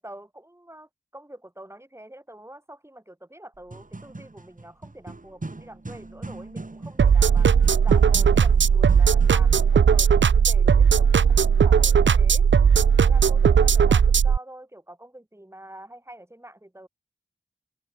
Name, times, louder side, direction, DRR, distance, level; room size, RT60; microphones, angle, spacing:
voice 1, 0.0-7.5 7.8-12.5 13.0-16.9, right 1 dB, 15° right, 2.4 m, -45 dB
sound 1, 3.5-9.8, right 2 dB, 45° right, 4.2 m, -40 dB
sound 2, 7.0-14.4, right 6 dB, 75° right, 0.5 m, -17 dB
open air
wide cardioid pair, 70°, 19 cm